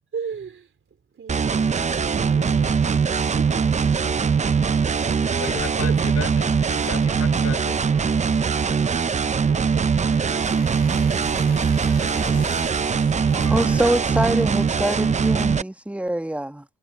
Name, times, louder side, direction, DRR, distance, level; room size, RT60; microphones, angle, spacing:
voice 1, 0.1-0.7 1.1-2.7 3.1-3.9 4.8-5.4 5.8-6.0 9.4-11.3 12.1-13.0, right 6 dB, 45° right, 3.8 m, -38 dB
sound 1, 1.3-15.6, right 6 dB, 25° right, 0.6 m, -21 dB
voice 2, 2.1-3.3 5.4-8.1 12.3-12.5, left 8 dB, 55° left, 4.5 m, -37 dB
sound 2, 6.6-15.2, right 12 dB, 75° right, 3.5 m, -44 dB
sound 3, 10.0-15.6, left 4 dB, 30° left, 2.4 m, -40 dB
voice 3, 13.5-16.6, right 1 dB, 5° right, 1.3 m, -24 dB
cardioid pair, 90°, 30 cm